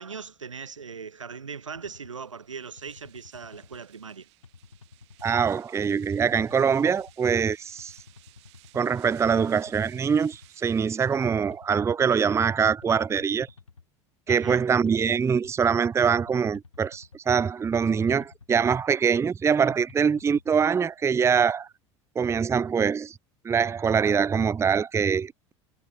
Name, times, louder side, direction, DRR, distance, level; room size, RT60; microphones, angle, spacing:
voice 1, 0.0-4.3 14.3-14.7, right 5 dB, 85° right, 1.0 m, -40 dB
sound 1, 1.7-2.1 2.8-3.8 4.4-5.5 6.1-7.1 7.8-8.8 9.5-10.5 11.1-12.2 12.8-13.8 14.5-15.5 16.2-17.2 17.8-18.9 19.5-20.5, left 5 dB, 85° left, 2.0 m, -51 dB
sound 2, 2.1-11.7, right 21 dB, 65° right, 5.6 m, -58 dB
voice 2, 5.2-7.9 8.7-13.5 14.3-21.7 22.2-23.1 23.4-25.5, right 6 dB, 15° right, 0.5 m, -24 dB
figure-of-eight pair, 70°, 16 cm